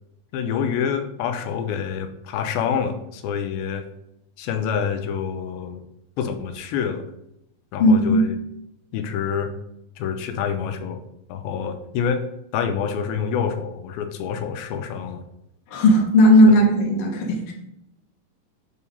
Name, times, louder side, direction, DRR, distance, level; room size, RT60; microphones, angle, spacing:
voice 1, 0.3-3.9 4.4-5.8 6.2-7.1 7.7-8.4 8.9-9.5 10.0-11.0 11.3-12.3 12.5-15.2, left 7 dB, 85° left, 7 dB, 2.5 m, -27 dB
voice 2, 7.8-8.3 15.7-17.5, equal, 55° left, 0 dB, 1.5 m, -15 dB
8.1 x 2.8 x 5.3 m, 0.80 s
omnidirectional pair, 4.3 m